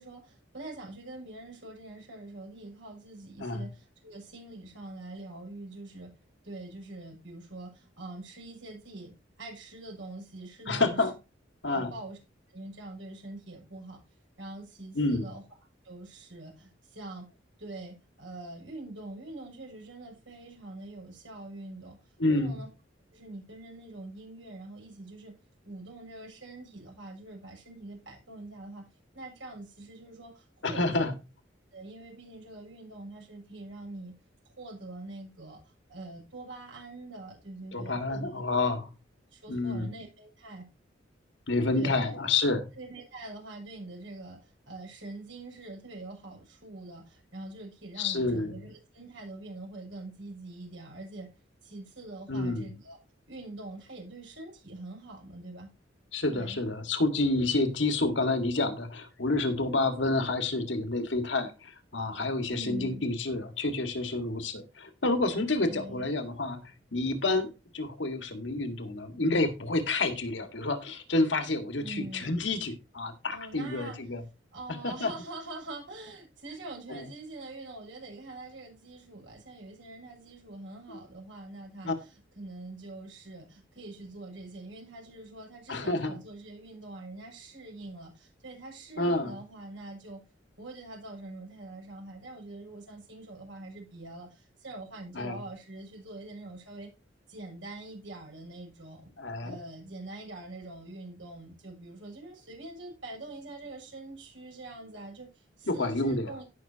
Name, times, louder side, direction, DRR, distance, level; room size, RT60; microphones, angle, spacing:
voice 1, 0.0-6.1 6.4-11.1 11.7-12.2 12.5-14.0 14.4-15.4 15.8-17.3 17.6-22.0 22.3-22.7 23.1-25.3 25.6-28.8 29.1-31.1 31.7-34.1 34.4-38.3 39.3-40.7 41.8-42.1 42.8-51.3 51.6-53.0 53.3-55.7 56.3-56.6 62.5-63.0 65.6-66.1 71.8-72.4 73.3-74.0 74.5-90.2 90.6-96.9 97.3-99.0 99.4-106.4, right 2 dB, 85° right, -1 dB, 6.5 m, -44 dB
voice 2, 10.7-11.1 11.6-11.9 15.0-15.2 22.2-22.6 30.6-31.1 37.7-38.9 39.5-39.9 41.5-42.7 48.0-48.5 52.3-52.7 56.1-67.5 67.7-74.2 74.8-75.1 76.9-77.0 80.9-81.0 81.8-81.9 85.7-86.1 89.0-89.3 95.1-95.4 99.2-99.6 105.7-106.3, left 2 dB, 75° left, 8 dB, 2.0 m, -29 dB
17.0 x 6.2 x 2.9 m, 0.28 s
head